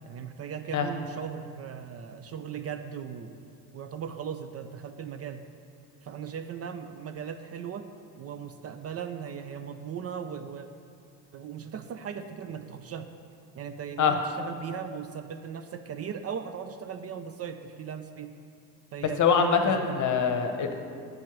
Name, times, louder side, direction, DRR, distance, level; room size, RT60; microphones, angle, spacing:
voice 1, 0.0-3.4 3.7-5.4 6.0-7.9 8.2-10.7 11.3-13.1 13.5-18.3 18.9-20.0, right 7 dB, 35° right, 8 dB, 0.5 m, -38 dB
voice 2, 19.0-20.7, left 6 dB, 45° left, 6 dB, 1.0 m, -24 dB
9.4 x 4.5 x 6.0 m, 2.3 s
hypercardioid pair, 75°, 44 cm